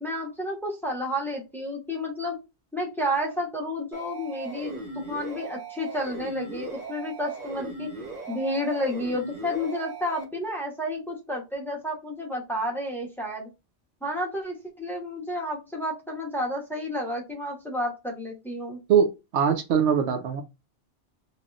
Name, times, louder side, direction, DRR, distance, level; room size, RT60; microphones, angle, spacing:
voice 1, 0.0-2.4 2.7-4.8 5.1-7.9 8.3-13.5 14.0-18.8, left 1 dB, ahead, 0.9 m, -31 dB
sound 1, 3.9-10.2, right 3 dB, 45° right, 0.8 m, -38 dB
voice 2, 18.9-20.4, right 7 dB, 85° right, 0.9 m, -22 dB
3.2 x 2.6 x 2.4 m
omnidirectional pair, 1.1 m